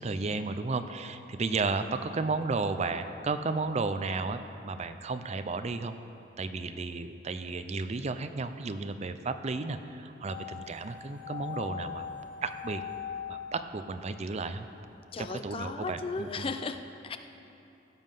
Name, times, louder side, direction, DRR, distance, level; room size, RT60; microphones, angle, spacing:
voice 1, 0.0-5.9 6.4-12.1 12.4-12.8 13.3-14.7 15.2-16.5, right 3 dB, 35° right, 10 dB, 0.4 m, -33 dB
sound 1, 10.2-14.3 14.6-14.7, left 8 dB, 70° left, 3.2 m, -41 dB
voice 2, 15.1-17.2, left 4 dB, 30° left, 9 dB, 0.4 m, -36 dB
16.0 x 7.4 x 5.5 m, 2.8 s
head